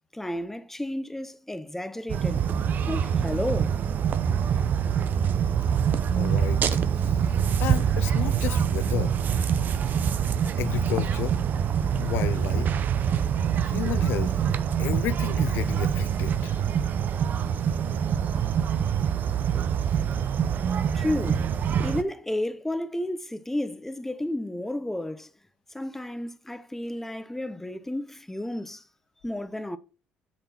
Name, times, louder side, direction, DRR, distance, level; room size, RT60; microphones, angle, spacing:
voice 1, 0.1-2.4 2.9-3.7 20.9-21.5 21.8-25.3 25.7-28.8 29.2-29.8, left 1 dB, 5° left, 0.9 m, -32 dB
sound 1, 2.1-22.0, right 8 dB, 50° right, 0.7 m, -25 dB
voice 2, 6.1-7.2 7.6-9.1 10.6-11.4 12.0-12.7 13.6-14.3 14.8-16.7, left 13 dB, 70° left, 0.4 m, -32 dB
10.5 x 4.0 x 4.4 m
supercardioid pair, 75°, 4 cm